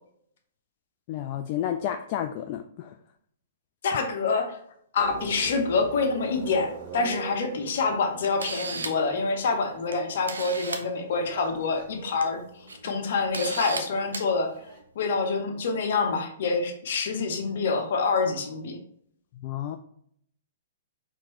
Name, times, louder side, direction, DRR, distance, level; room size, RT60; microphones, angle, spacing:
voice 1, 1.1-2.9 19.3-19.8, left 10 dB, 40° left, 6 dB, 0.3 m, -31 dB
voice 2, 3.8-4.6 4.9-12.4 12.8-14.5 14.9-18.8, left 4 dB, 60° left, 4 dB, 0.9 m, -26 dB
sound 1, 5.0-14.8, right 3 dB, 45° right, 1.4 m, -43 dB
Camera, 7.7-7.8 8.2-9.1 9.9-10.0 10.3-10.8 12.0-12.2 12.7-12.8 13.3-13.8 14.1-14.3, right 3 dB, 80° right, 0.6 m, -34 dB
4.6 x 3.6 x 3.0 m, 0.66 s
figure-of-eight pair, 115°, 0 cm